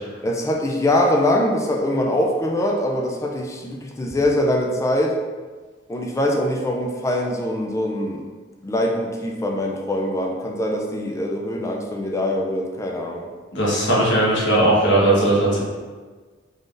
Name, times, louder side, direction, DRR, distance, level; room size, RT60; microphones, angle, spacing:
voice 1, 0.2-5.2 5.9-8.2 8.6-13.3, left 1 dB, 15° left, 0 dB, 0.4 m, -23 dB
voice 2, 13.5-15.6, right 1 dB, 80° left, -6 dB, 1.2 m, -18 dB
3.8 x 3.3 x 2.6 m, 1.4 s
head